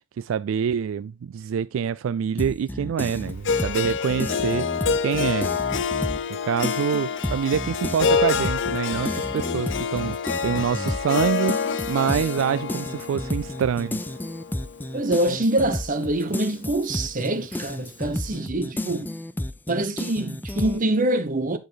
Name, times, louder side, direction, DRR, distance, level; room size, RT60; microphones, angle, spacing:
voice 1, 0.2-4.7 5.0-5.5 6.3-10.2 10.4-14.0, right 7 dB, 75° right, 0.3 m, -26 dB
sound 1, 2.4-6.3 6.6-20.8, left 1 dB, 10° left, 0.4 m, -32 dB
Harp, 3.4-15.6, left 6 dB, 65° left, 0.6 m, -27 dB
voice 2, 14.9-19.1 19.7-21.6, right 1 dB, 40° right, 1.0 m, -25 dB
9.7 x 5.1 x 3.9 m
head